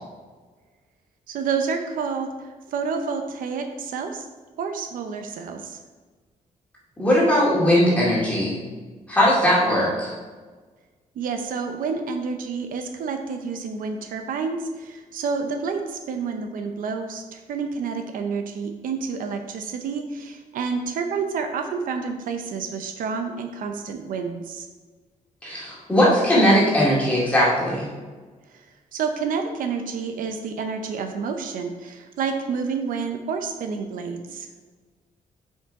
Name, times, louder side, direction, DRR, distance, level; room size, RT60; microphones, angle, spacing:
voice 1, 1.3-2.3 2.7-4.3 4.6-5.8 11.2-24.7 28.9-34.5, right 5 dB, 90° right, 6 dB, 0.7 m, -29 dB
voice 2, 7.0-8.6 9.1-10.1 25.4-27.9, equal, 10° left, -7 dB, 2.3 m, -19 dB
7.5 x 5.5 x 3.7 m, 1.3 s
wide cardioid pair, 165°, 14 cm